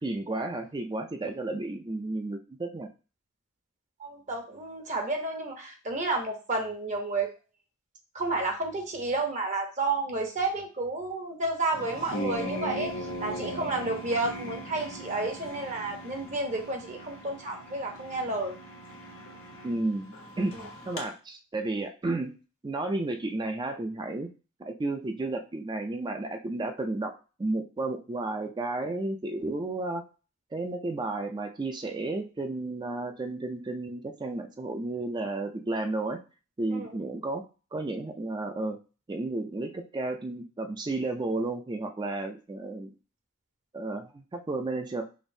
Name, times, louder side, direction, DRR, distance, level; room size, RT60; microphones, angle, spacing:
voice 1, 0.0-2.9 19.6-20.5 20.9-22.3 22.6-24.3 24.6-27.1 27.4-30.0 30.5-36.2 36.6-37.4 37.7-38.8 39.1-42.9 43.7-45.0, right 2 dB, 20° right, 5 dB, 0.4 m, -32 dB
voice 2, 4.0-7.3 8.1-12.9 13.2-18.6 36.7-36.9, right 2 dB, 35° right, 3 dB, 0.8 m, -31 dB
sound 1, 11.7-21.0, equal, 90° left, 1.0 m, -39 dB
5.0 x 2.6 x 2.6 m, 0.33 s
head